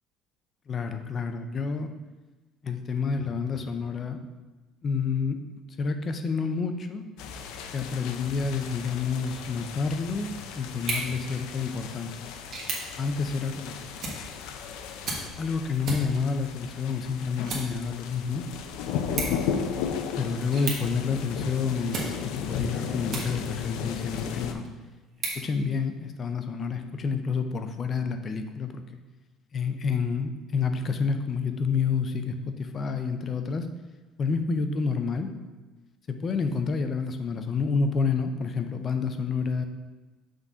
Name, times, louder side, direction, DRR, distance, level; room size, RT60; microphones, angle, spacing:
voice 1, 0.7-1.9 2.6-4.2 4.8-5.4 5.8-7.1 7.7-12.3 13.0-13.8 15.4-18.4 20.2-24.6 25.3-28.8 29.5-33.7 34.2-35.3 36.1-39.6, left 5 dB, 25° left, 7 dB, 0.5 m, -29 dB
sound 1, 7.2-24.5, left 7 dB, 80° left, 0.5 m, -35 dB
sound 2, 10.7-23.7 24.2-26.3, right 3 dB, 40° right, 1.3 m, -39 dB
6.0 x 3.8 x 5.5 m, 1.2 s
cardioid pair, 175°, 0 cm